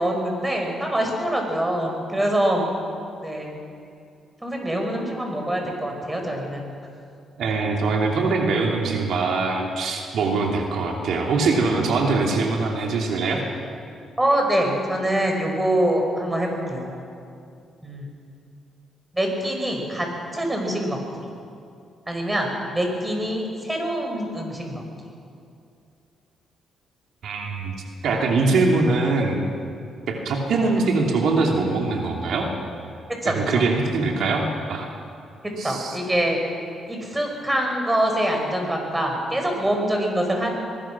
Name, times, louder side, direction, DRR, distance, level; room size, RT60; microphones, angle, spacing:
voice 1, 0.0-2.7 3.2-3.6 4.4-6.7 14.2-16.9 17.8-18.1 19.1-20.1 20.3-21.3 22.1-24.8 33.2-33.6 35.4-36.4 36.9-40.6, right 1 dB, 10° right, 2 dB, 5.8 m, -24 dB
voice 2, 7.4-13.4 27.2-27.7 28.0-29.4 30.1-32.5 33.2-34.8 35.6-36.0, right 3 dB, 70° right, 0 dB, 3.3 m, -22 dB
24.0 x 20.5 x 6.3 m, 2.4 s
cardioid pair, 90°, 0 cm